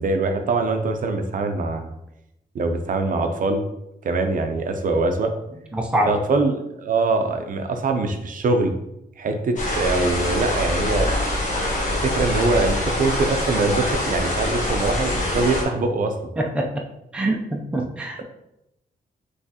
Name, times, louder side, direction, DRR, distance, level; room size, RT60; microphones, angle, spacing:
voice 1, 0.0-1.9 2.5-3.6 4.0-5.3 6.1-8.7 9.2-11.1 11.8-16.1, right 3 dB, 55° right, 5 dB, 0.5 m, -23 dB
voice 2, 5.7-6.1 16.4-16.8 17.1-18.2, right 1 dB, 5° right, 0 dB, 0.5 m, -24 dB
sound 1, 9.6-15.6, left 1 dB, 50° left, 1.0 m, -24 dB
5.8 x 3.1 x 2.8 m, 0.84 s
wide cardioid pair, 180°, 16 cm